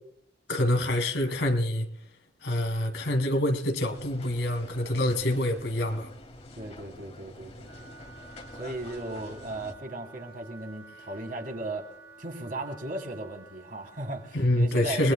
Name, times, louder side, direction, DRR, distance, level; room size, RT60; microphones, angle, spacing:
voice 1, 0.5-1.9 2.4-6.1 14.3-15.1, left 1 dB, 75° left, 2.1 m, -26 dB
sound 1, 3.9-9.7, left 1 dB, 35° left, 2.2 m, -47 dB
voice 2, 6.6-8.1 8.6-11.9 12.2-15.1, right 2 dB, 50° right, 3.3 m, -37 dB
Wind instrument woodwind instrument, 7.5-14.6, right 3 dB, 15° right, 3.4 m, -51 dB
29.5 x 20.0 x 2.2 m
head